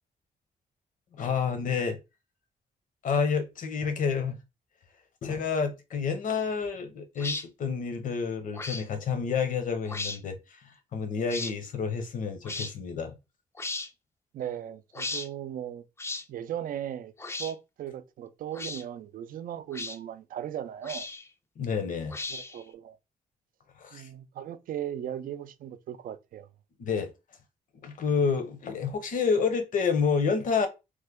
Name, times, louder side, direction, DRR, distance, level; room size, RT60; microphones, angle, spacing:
voice 1, 1.1-2.0 3.0-4.4 5.2-13.2 21.6-22.2 23.8-24.1 26.8-27.1 27.8-30.7, left 5 dB, 60° left, 0.8 m, -29 dB
sound 1, 7.2-7.4 8.5-8.8 9.8-10.2 11.3-11.5 12.4-12.7 13.6-13.9 14.9-15.3 16.0-16.2 17.2-17.5 18.5-18.8 19.7-20.0 20.8-21.3 22.1-22.6, left 3 dB, 15° left, 0.4 m, -35 dB
voice 2, 14.3-15.8 16.3-17.1 17.4-21.1 22.3-23.0 23.9-26.5, right 10 dB, 70° right, 0.4 m, -37 dB
3.2 x 2.1 x 3.5 m
cardioid pair, 125°, 15 cm